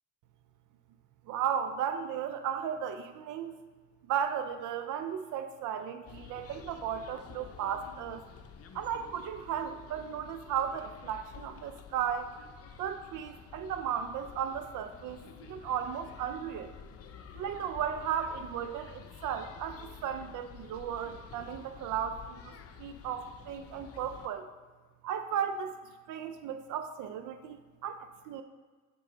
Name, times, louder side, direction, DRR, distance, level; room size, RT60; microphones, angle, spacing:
voice 1, 1.3-3.5 4.1-8.2 8.7-12.3 12.8-16.7 17.3-22.5 22.8-24.5 25.0-28.4, right 8 dB, 80° right, 9 dB, 0.5 m, -35 dB
sound 1, 6.0-24.3, left 7 dB, 50° left, 0.6 m, -50 dB
6.9 x 5.4 x 3.9 m, 1.4 s
cardioid pair, 90°, 30 cm